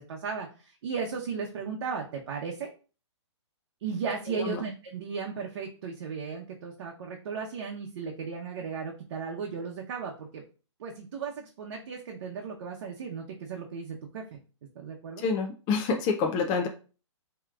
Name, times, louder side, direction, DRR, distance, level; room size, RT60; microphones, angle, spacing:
voice 1, 0.0-2.7 3.8-10.4 10.8-14.4 14.7-15.2, right 5 dB, 50° right, 1 dB, 0.9 m, -36 dB
voice 2, 15.2-16.7, left 5 dB, 25° left, 2 dB, 0.5 m, -27 dB
7.1 x 3.0 x 2.4 m, 0.37 s
hypercardioid pair, 140°, 16 cm